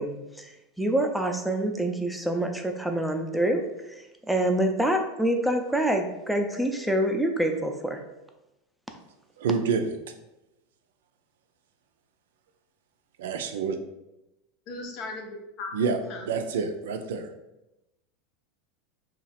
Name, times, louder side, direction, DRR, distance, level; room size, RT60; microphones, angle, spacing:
voice 1, 0.0-8.0, right 1 dB, ahead, 3 dB, 0.5 m, -26 dB
voice 2, 9.4-10.0 13.2-13.8 15.7-17.3, right 5 dB, 75° right, 6 dB, 0.4 m, -28 dB
voice 3, 14.7-15.7 16.1-16.3, left 2 dB, 50° left, 2 dB, 0.7 m, -37 dB
2.8 x 2.4 x 4.2 m, 0.94 s
hypercardioid pair, 95°, 0 cm